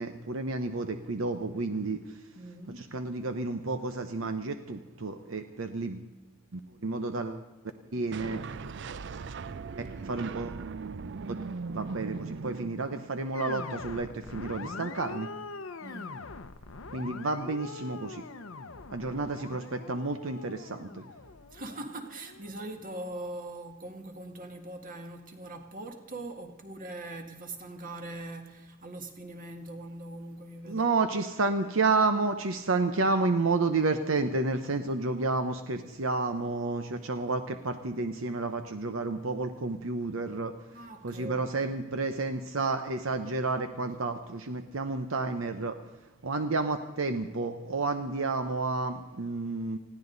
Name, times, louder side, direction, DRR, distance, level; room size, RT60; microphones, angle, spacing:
voice 1, 0.0-2.0 2.8-6.1 6.5-7.4 7.9-8.4 10.0-10.6 11.7-15.3 16.9-18.2 18.9-21.0 30.7-40.6 41.0-45.8 46.2-49.8, right 3 dB, 80° right, 8 dB, 0.9 m, -30 dB
voice 2, 2.4-2.9 15.8-16.2 21.5-30.9 40.7-41.8, right 1 dB, 45° right, 5 dB, 1.9 m, -42 dB
sound 1, 8.1-13.3, right 4 dB, 60° right, 0.5 m, -39 dB
sound 2, 13.3-22.6, left 4 dB, 85° left, 0.8 m, -43 dB
20.5 x 15.5 x 4.0 m, 1.1 s
head